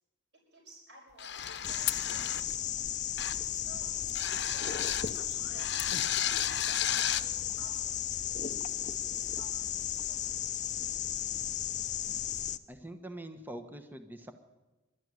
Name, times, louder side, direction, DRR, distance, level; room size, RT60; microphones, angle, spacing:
voice 1, 0.5-2.6 3.5-5.9 6.5-10.6, right 1 dB, 60° right, -6 dB, 6.6 m, -56 dB
sound 1, 1.2-2.6 3.2-3.5 4.2-5.2 5.6-7.3, left 10 dB, 60° left, 1.0 m, -34 dB
sound 2, 1.6-12.6, left 10 dB, 35° left, 0.7 m, -34 dB
sound 3, 1.8-6.8, left 13 dB, 75° left, 0.6 m, -43 dB
voice 2, 12.7-14.3, right 1 dB, 10° right, 7 dB, 1.1 m, -44 dB
25.5 x 13.0 x 9.6 m, 1.2 s
head